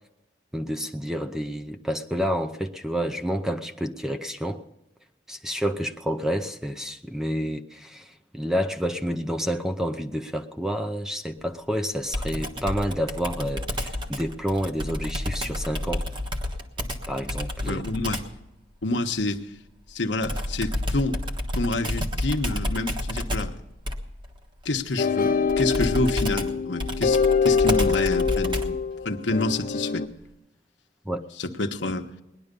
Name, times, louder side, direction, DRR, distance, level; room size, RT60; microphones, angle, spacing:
voice 1, 0.5-4.6 5.3-16.1 17.1-17.8 31.0-31.2, equal, 5° right, 6 dB, 0.6 m, -29 dB
Computer keyboard, 12.1-18.4 20.2-28.9, left 1 dB, 25° right, 1.4 m, -30 dB
voice 2, 17.7-18.2 18.8-19.5 19.9-21.2 21.5-23.5 24.6-28.8 29.0-30.1 31.4-32.1, left 2 dB, 70° left, 6 dB, 1.1 m, -28 dB
sound 1, 25.0-30.1, left 5 dB, 50° left, 0.7 m, -24 dB
19.5 x 11.0 x 5.3 m, 0.94 s
head